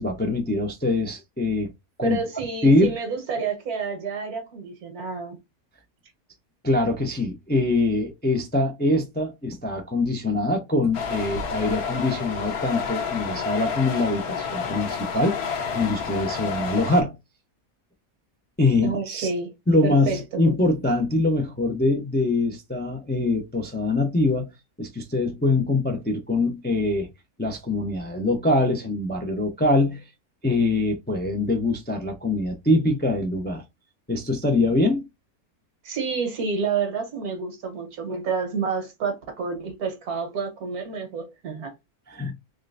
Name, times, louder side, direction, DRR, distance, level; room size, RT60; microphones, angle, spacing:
voice 1, 0.0-1.7 2.0-2.2 2.6-3.0 6.6-15.4 15.7-17.2 18.6-19.3 19.7-24.5 24.8-27.1 27.4-30.0 30.4-33.6 34.1-35.0 42.1-42.3, left 2 dB, 15° left, 0.3 m, -23 dB
voice 2, 2.0-5.4 18.8-19.5 19.8-20.4 35.8-41.7, right 5 dB, 85° right, 1.6 m, -29 dB
sound 1, 10.9-17.0, left 6 dB, 85° left, 1.3 m, -30 dB
3.7 x 3.2 x 2.5 m
omnidirectional pair, 1.6 m